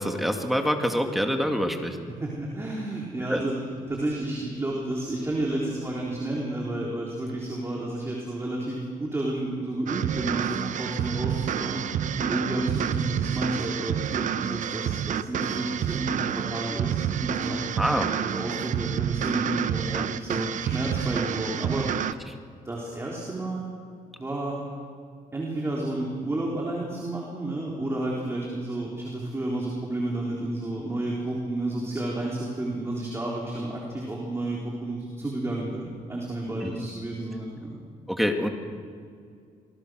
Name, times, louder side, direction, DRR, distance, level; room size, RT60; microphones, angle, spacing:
voice 1, 0.0-2.1 3.3-3.4 17.8-18.1 19.9-20.0 36.6-36.9 38.1-38.5, equal, ahead, 4 dB, 2.3 m, -26 dB
voice 2, 2.1-3.6 3.9-11.8 12.2-17.7 18.2-21.9 22.6-23.6 24.2-24.6 25.3-37.8, right 1 dB, 15° right, -3 dB, 3.9 m, -31 dB
sound 1, 9.9-22.1, right 9 dB, 60° right, 0.8 m, -29 dB
27.0 x 20.0 x 6.4 m, 2.3 s
cardioid pair, 120°, 15 cm